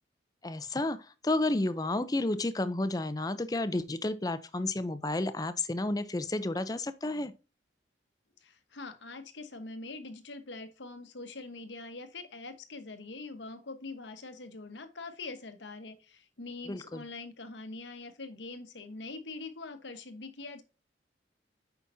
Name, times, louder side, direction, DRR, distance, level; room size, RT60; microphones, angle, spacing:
voice 1, 0.4-7.3 16.7-17.0, left 2 dB, 20° left, 0.5 m, -31 dB
voice 2, 8.4-20.6, left 3 dB, 80° left, 1.2 m, -43 dB
8.3 x 5.8 x 2.7 m
head